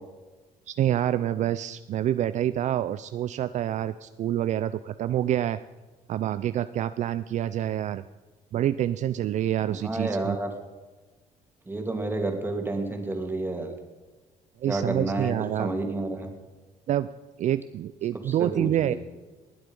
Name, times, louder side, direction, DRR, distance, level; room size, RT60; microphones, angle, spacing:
voice 1, 0.7-5.6 6.1-8.0 8.5-10.4 14.6-15.7 16.9-17.1 17.4-18.9, right 11 dB, 60° right, 13 dB, 0.4 m, -27 dB
voice 2, 9.7-10.5 11.7-13.7 14.7-16.3 18.3-19.0, right 2 dB, 15° right, 3 dB, 2.7 m, -30 dB
20.5 x 8.0 x 5.4 m, 1.2 s
cardioid pair, 100°, 14 cm